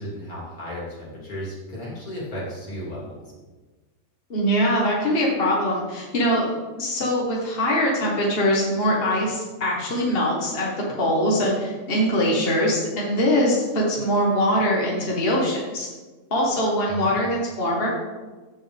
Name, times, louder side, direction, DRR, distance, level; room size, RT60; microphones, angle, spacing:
voice 1, 0.0-3.3 16.9-17.2, equal, 65° left, -5 dB, 3.1 m, -34 dB
voice 2, 4.3-10.7 11.0-15.9 16.3-17.9, equal, 40° left, -3 dB, 1.6 m, -22 dB
14.5 x 5.5 x 3.4 m, 1.3 s
omnidirectional pair, 1.6 m